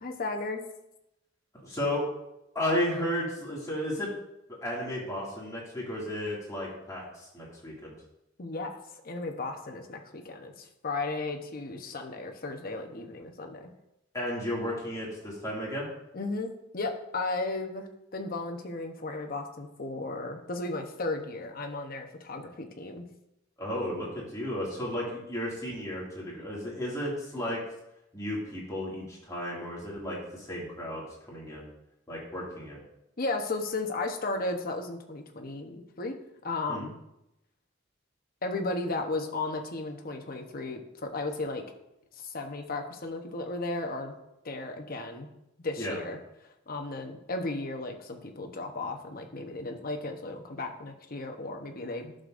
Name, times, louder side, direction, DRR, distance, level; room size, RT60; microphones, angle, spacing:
voice 1, 0.0-0.7 8.4-8.8 9.0-13.7 16.1-23.1 33.2-36.2 36.4-37.0 38.4-41.6 42.2-44.1 44.4-45.3 45.6-46.2 46.7-52.1, left 2 dB, 45° left, 4 dB, 1.0 m, -35 dB
voice 2, 1.6-2.1 2.5-4.1 4.6-7.9 14.1-15.9 23.6-27.6 28.1-31.7 32.1-32.8 36.7-36.9 45.8-46.0, left 1 dB, 20° left, -5 dB, 2.3 m, -33 dB
11.5 x 6.6 x 2.6 m, 0.86 s
head